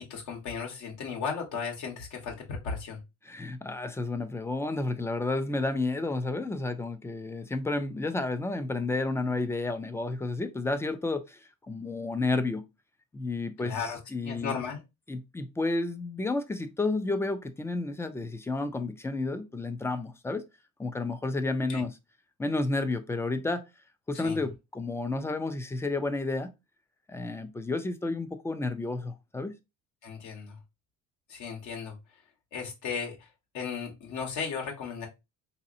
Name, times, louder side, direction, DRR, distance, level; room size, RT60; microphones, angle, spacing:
voice 1, 0.1-3.0 13.6-14.8 21.7-21.8 24.2-24.4 30.0-30.6 31.3-31.9 32.5-33.1 33.5-35.1, left 6 dB, 65° left, 1.2 m, -35 dB
voice 2, 3.2-12.6 13.1-14.6 15.1-20.4 20.8-22.0 22.4-23.6 24.1-26.5 27.1-29.5, left 2 dB, 10° left, 0.3 m, -31 dB
4.0 x 2.7 x 2.5 m
cardioid pair, 145°, 31 cm